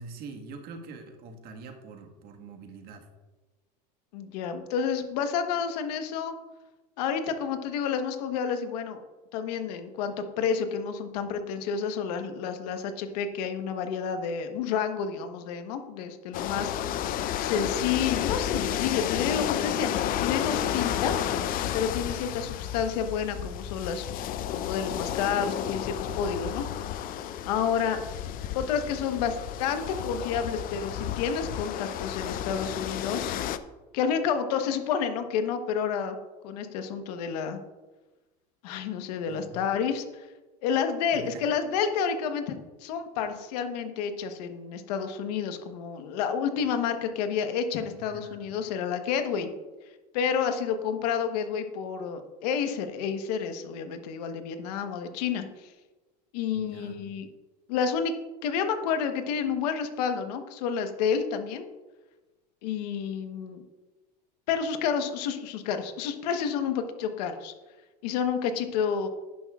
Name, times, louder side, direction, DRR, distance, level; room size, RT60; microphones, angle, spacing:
voice 1, 0.0-3.1 22.2-22.5 39.3-39.6 41.1-41.4 48.1-48.5 56.5-57.0, right 3 dB, 50° right, 4 dB, 1.6 m, -44 dB
voice 2, 4.1-6.3 7.0-9.0 9.3-17.0 17.4-19.9 20.2-21.2 21.7-26.7 27.5-28.0 28.5-33.4 33.9-36.2 36.4-37.6 38.6-40.3 40.6-42.5 42.8-49.5 50.1-55.4 56.3-57.3 57.7-58.1 58.4-61.6 62.6-63.6 64.5-67.5 68.0-69.1, left 7 dB, 75° left, 7 dB, 1.2 m, -30 dB
sound 1, 16.3-33.6, left 10 dB, 45° left, 0.6 m, -31 dB
11.5 x 10.0 x 2.4 m, 1.2 s
supercardioid pair, 110°, 21 cm